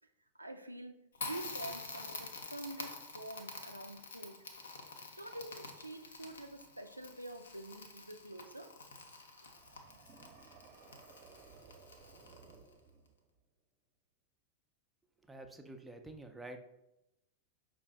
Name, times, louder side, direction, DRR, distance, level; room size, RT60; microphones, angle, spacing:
voice 1, 0.4-4.4 5.2-8.7, right 1 dB, 85° right, 7 dB, 0.3 m, -47 dB
Crackle, 1.1-12.7, left 3 dB, 70° left, 0.6 m, -48 dB
sound 1, 9.5-13.4, right 5 dB, 40° right, 0.7 m, -59 dB
voice 2, 15.3-16.6, right 2 dB, 5° right, 5 dB, 0.5 m, -48 dB
5.3 x 2.5 x 3.5 m, 0.85 s
figure-of-eight pair, 90°, 0 cm